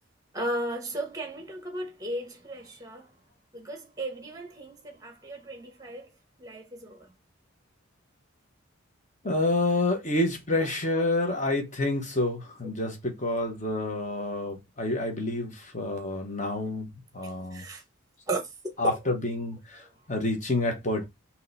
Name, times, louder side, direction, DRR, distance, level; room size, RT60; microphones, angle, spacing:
voice 1, 0.3-3.1 3.5-6.1 6.4-7.1 10.6-10.7 11.0-11.1 17.2-17.8 18.3-19.0, right 1 dB, 15° right, 0.9 m, -35 dB
voice 2, 9.2-16.9 17.1-17.6 18.8-21.0, left 2 dB, 35° left, 1.0 m, -28 dB
3.7 x 2.9 x 4.0 m
head